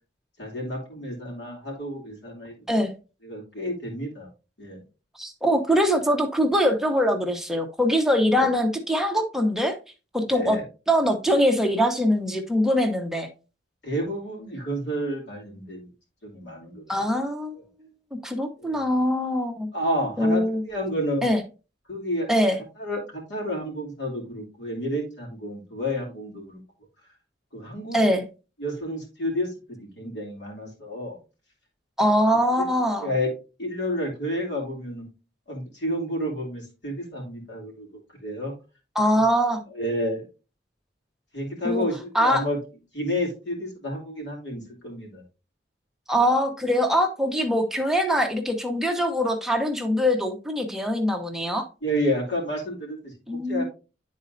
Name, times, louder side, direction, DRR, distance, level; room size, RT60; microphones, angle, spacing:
voice 1, 0.4-2.5 3.2-4.3 4.6-4.8 8.3-8.5 10.3-10.6 13.8-15.9 16.2-16.9 18.6-18.9 19.7-21.3 21.9-22.3 22.8-26.6 27.5-28.1 28.6-31.2 32.6-32.7 33.0-33.3 33.6-35.0 35.5-38.5 39.7-40.2 41.3-42.6 42.9-45.2 51.8-53.1 53.5-53.7, equal, 75° left, 2.8 m, -30 dB
voice 2, 5.2-9.8 10.1-10.6 10.9-13.3 16.9-17.6 18.2-19.7 20.2-20.6 21.2-21.4 22.3-22.6 27.9-28.2 32.0-33.1 38.9-39.6 41.6-41.9 42.1-42.4 46.1-51.7 53.3-53.6, equal, 5° right, 0.9 m, -23 dB
11.0 x 4.2 x 2.6 m
head